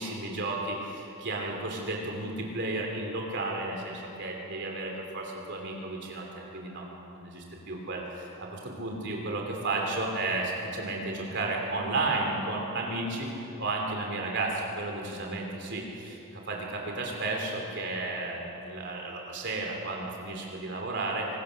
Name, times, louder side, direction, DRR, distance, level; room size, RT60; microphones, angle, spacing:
voice 1, 0.0-6.9 7.1-13.3 13.6-21.3, right 2 dB, 55° right, 0 dB, 3.2 m, -33 dB
25.0 x 21.5 x 6.6 m, 2.9 s
head